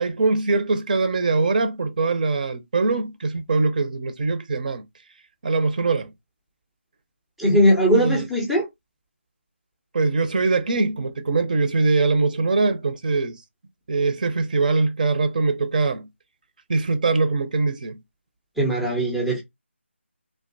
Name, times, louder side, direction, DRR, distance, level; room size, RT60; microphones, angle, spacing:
voice 1, 0.0-4.8 5.4-6.1 7.9-8.2 9.9-13.4 13.9-16.1 16.7-18.0, right 3 dB, 40° right, 0.6 m, -22 dB
voice 2, 7.4-8.7 18.6-19.4, equal, ahead, 0.5 m, -19 dB
3.3 x 2.5 x 2.5 m
figure-of-eight pair, 165°, 7 cm